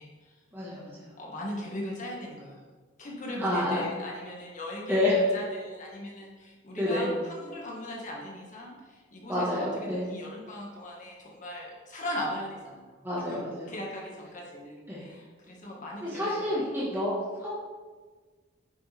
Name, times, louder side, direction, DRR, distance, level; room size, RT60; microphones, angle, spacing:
voice 1, 0.0-0.3 1.2-2.6 3.0-12.9 13.3-13.4 13.7-16.6, left 1 dB, 40° left, -3 dB, 2.0 m, -39 dB
voice 2, 0.5-1.1 3.4-3.8 4.9-5.1 6.8-7.1 9.3-10.1 13.0-13.7 14.9-15.1 16.0-17.1 17.4-17.5, left 1 dB, 10° right, -8 dB, 1.8 m, -29 dB
9.8 x 6.9 x 3.6 m, 1.4 s
head